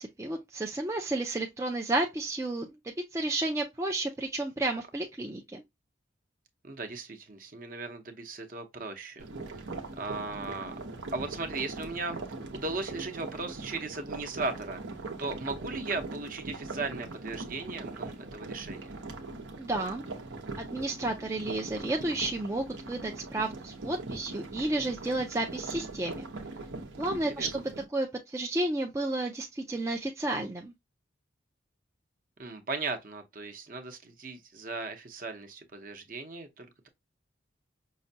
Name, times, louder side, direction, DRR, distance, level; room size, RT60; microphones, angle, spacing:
voice 1, 0.0-5.6 19.6-20.0 20.6-26.3 27.0-27.6 27.9-30.7, right 2 dB, 15° right, 0.3 m, -32 dB
voice 2, 6.6-9.6 10.0-10.8 11.1-12.2 12.5-14.8 15.2-19.0 27.4-27.5 32.4-36.9, right 3 dB, 45° right, 0.7 m, -37 dB
sound 1, 9.2-27.8, right 3 dB, 80° right, 0.8 m, -41 dB
5.6 x 2.2 x 2.7 m
head